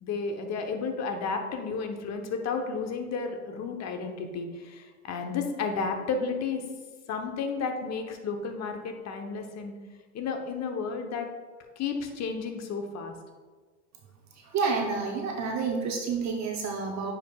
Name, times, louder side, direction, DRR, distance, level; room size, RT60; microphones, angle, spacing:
voice 1, 0.0-6.6 7.1-9.7 10.1-11.3 11.8-13.1, left 5 dB, 35° left, 4 dB, 1.0 m, -32 dB
voice 2, 14.3-17.1, right 4 dB, 35° right, 1 dB, 0.8 m, -29 dB
9.0 x 5.0 x 2.3 m, 1.4 s
supercardioid pair, 110°, 45 cm